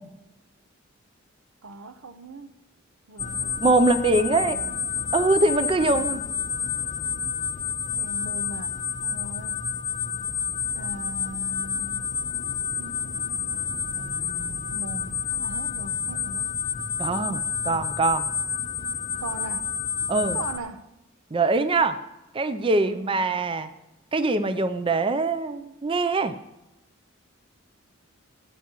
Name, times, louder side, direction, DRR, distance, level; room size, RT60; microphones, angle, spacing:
voice 1, 1.6-2.6 3.1-4.8 5.7-6.4 7.9-9.7 10.7-12.1 12.7-13.6 14.7-16.5 17.1-17.8 19.2-19.7 20.2-20.9 22.7-23.3, right 2 dB, 90° right, 0.8 m, -40 dB
sound 1, 3.2-20.6, left 7 dB, 35° left, 0.6 m, -29 dB
voice 2, 3.6-4.6 5.1-6.2 14.0-14.6 17.0-18.3 20.1-20.4 21.3-22.0 22.3-23.7 24.1-26.3, right 3 dB, 25° right, 0.4 m, -23 dB
17.5 x 9.2 x 3.0 m
head